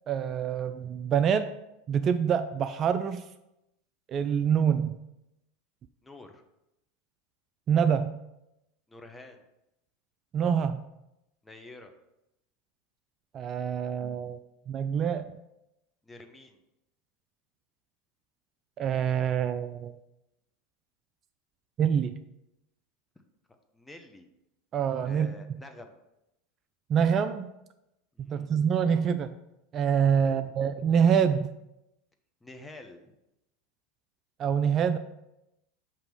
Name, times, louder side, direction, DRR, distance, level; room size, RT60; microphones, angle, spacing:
voice 1, 0.1-1.5 1.9-3.2 4.1-5.0 7.7-8.1 10.3-10.8 13.3-14.4 14.7-15.3 18.8-20.0 21.8-22.2 24.7-25.3 26.9-27.5 28.2-29.3 29.7-31.5 34.4-35.0, right 7 dB, 40° right, 10 dB, 0.3 m, -26 dB
voice 2, 6.0-6.4 8.9-9.4 11.4-11.9 16.0-16.6 23.7-24.3 25.0-26.0 28.1-28.5 30.2-30.6 32.4-33.1, left 2 dB, 10° left, 5 dB, 0.8 m, -48 dB
6.7 x 2.9 x 5.3 m, 0.88 s
hypercardioid pair, 95°, 0 cm